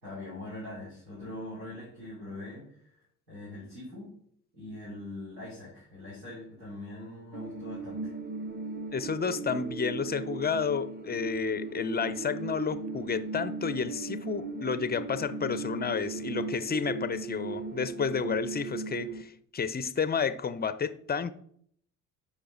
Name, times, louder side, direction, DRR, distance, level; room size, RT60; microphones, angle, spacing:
voice 1, 0.0-2.9 3.3-4.1 4.5-8.1, left 2 dB, 90° right, 3.0 m, -42 dB
sound 1, 7.3-19.2, right 3 dB, 20° right, 1.0 m, -37 dB
voice 2, 8.9-21.3, left 6 dB, 20° left, 0.5 m, -31 dB
11.5 x 5.1 x 3.8 m
hypercardioid pair, 50°, 46 cm